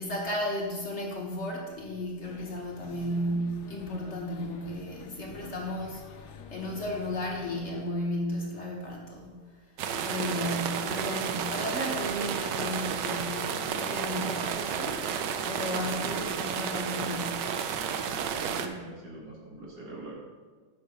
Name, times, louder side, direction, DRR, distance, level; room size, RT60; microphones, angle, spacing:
voice 1, 0.0-9.8 10.0-17.7, left 1 dB, 45° left, -2 dB, 1.6 m, -34 dB
sound 1, 2.2-7.9, left 5 dB, 70° left, 1.3 m, -48 dB
sound 2, 9.8-18.7, right 7 dB, 90° right, 1.3 m, -32 dB
voice 2, 18.2-20.1, right 2 dB, 65° right, -3 dB, 2.6 m, -43 dB
8.7 x 6.1 x 5.3 m, 1.4 s
omnidirectional pair, 1.8 m